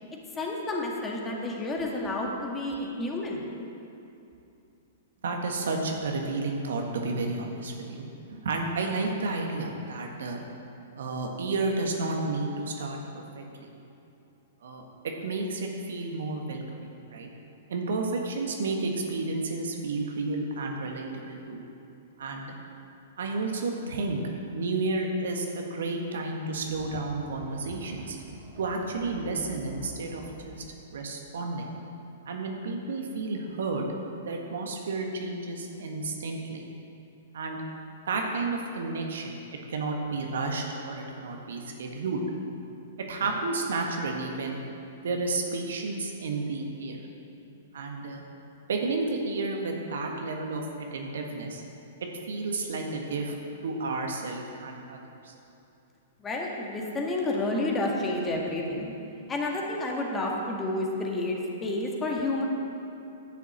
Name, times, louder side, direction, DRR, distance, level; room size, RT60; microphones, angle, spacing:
voice 1, 0.4-3.5 56.2-58.9 59.3-62.4, left 2 dB, 20° left, -1 dB, 1.9 m, -30 dB
voice 2, 5.2-8.1 8.4-10.4 10.9-13.7 14.6-17.3 17.7-21.6 22.2-22.5 23.2-24.2 24.5-28.2 28.6-30.6 30.9-31.7 32.2-33.9 34.2-36.6 37.3-37.6 38.1-39.4 39.7-42.2 43.1-44.6 45.0-47.0 47.7-48.2 48.7-51.6 52.3-53.3 53.6-55.3, right 3 dB, 70° right, 1 dB, 1.6 m, -31 dB
sound 1, 26.4-30.6, right 2 dB, 30° right, 2.8 m, -47 dB
11.0 x 7.0 x 7.3 m, 2.8 s
hypercardioid pair, 110°, 0 cm